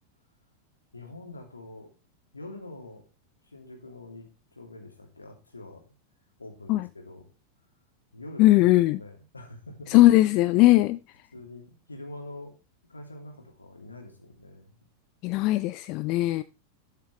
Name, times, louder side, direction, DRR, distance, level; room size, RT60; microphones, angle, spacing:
voice 1, 0.9-1.9 2.3-3.1 3.5-5.9 6.4-7.3 8.1-9.9 10.2-10.9 11.3-12.6 12.9-14.8, left 2 dB, 80° left, 2 dB, 2.9 m, -45 dB
voice 2, 8.4-9.0 9.9-11.0 15.2-16.4, left 17 dB, 40° left, 14 dB, 0.4 m, -19 dB
12.5 x 6.8 x 3.3 m, 0.29 s
figure-of-eight pair, 90°, 0 cm